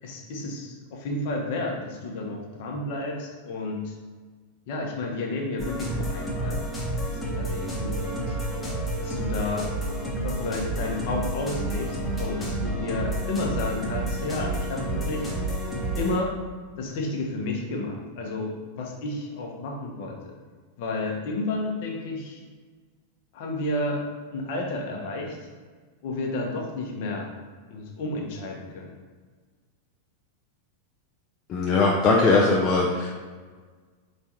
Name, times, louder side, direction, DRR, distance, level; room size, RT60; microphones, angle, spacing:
voice 1, 0.0-3.9 4.7-6.6 7.1-8.4 9.0-9.7 10.1-15.3 15.9-16.3 16.8-20.3 20.8-22.4 23.3-24.0 24.3-25.4 26.0-27.3 27.7-28.9, left 2 dB, 50° left, 0 dB, 0.8 m, -31 dB
sound 1, 5.6-16.2, right 1 dB, 15° left, 0.9 m, -30 dB
voice 2, 31.5-33.1, left 3 dB, 30° left, -2 dB, 0.5 m, -20 dB
4.6 x 3.2 x 2.7 m, 1.5 s
figure-of-eight pair, 90°, 0 cm